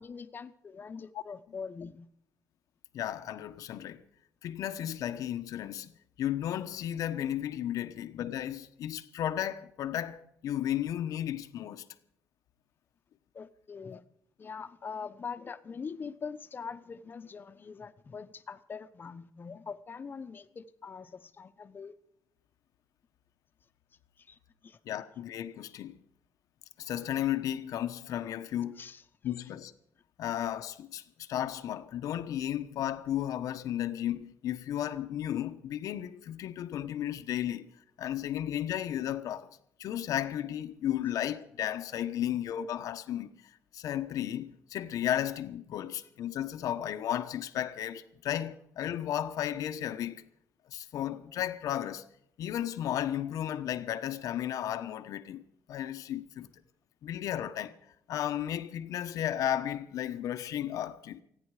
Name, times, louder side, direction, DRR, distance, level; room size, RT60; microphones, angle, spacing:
voice 1, 0.0-2.1 7.9-8.0 13.3-14.0 14.4-21.9 24.2-24.8 28.8-29.0 56.4-56.5, left 5 dB, 35° left, 1.0 m, -43 dB
voice 2, 2.9-4.0 4.4-11.8 13.9-14.0 24.8-26.0 26.8-28.8 29.2-29.7 30.2-37.7 38.0-50.2 50.7-52.0 52.4-56.5 57.0-57.8 58.1-61.2, left 11 dB, 85° left, 1.0 m, -34 dB
29.0 x 10.0 x 4.9 m
cardioid pair, 125°, 6 cm